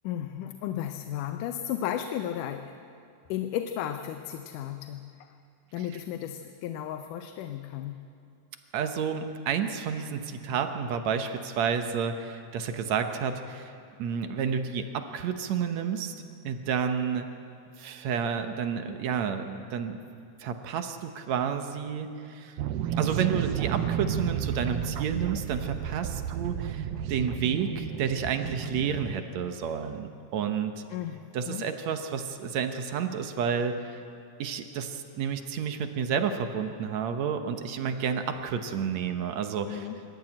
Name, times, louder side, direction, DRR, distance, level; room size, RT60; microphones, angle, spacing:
voice 1, 0.0-2.8 3.3-5.1 5.7-8.0 30.9-31.7 39.7-40.0, left 11 dB, 85° left, 8 dB, 2.3 m, -34 dB
voice 2, 8.7-13.7 14.0-17.3 17.8-20.0 20.4-22.6 23.0-30.8 31.3-34.0 34.4-39.9, right 7 dB, 65° right, 7 dB, 2.1 m, -30 dB
sound 1, 22.6-29.2, right 9 dB, 85° right, 2.3 m, -32 dB
25.0 x 13.5 x 8.8 m, 2.5 s
omnidirectional pair, 3.6 m